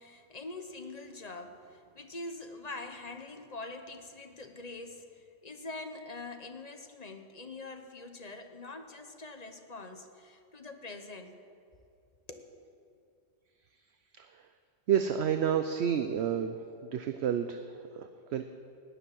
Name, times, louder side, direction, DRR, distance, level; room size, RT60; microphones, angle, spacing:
voice 1, 0.0-11.4 12.3-12.5, left 2 dB, 30° left, 7 dB, 1.0 m, -44 dB
voice 2, 14.1-14.5 14.9-16.5 16.8-18.4, right 8 dB, 60° right, 8 dB, 0.9 m, -30 dB
17.5 x 7.2 x 10.0 m, 2.4 s
omnidirectional pair, 1.4 m